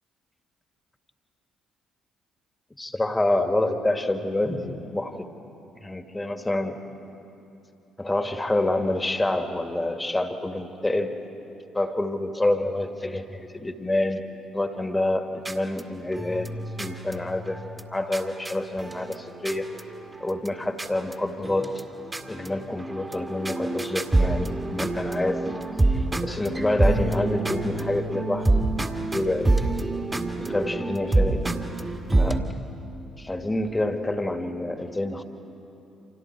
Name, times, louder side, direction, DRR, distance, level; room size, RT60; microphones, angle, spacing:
voice 1, 2.8-5.3 5.8-6.8 8.0-11.2 11.7-14.2 14.5-16.5 16.8-17.6 17.9-19.7 20.2-21.8 22.3-25.5 25.9-28.7 29.1-29.6 30.4-31.5 32.2-32.5 33.2-35.2, left 1 dB, 15° left, 7 dB, 2.0 m, -27 dB
sound 1, 15.4-20.5 20.8-21.2 21.4-32.4, right 2 dB, 20° right, 2.0 m, -27 dB
30.0 x 26.5 x 4.7 m, 2.9 s
figure-of-eight pair, 45°, 0 cm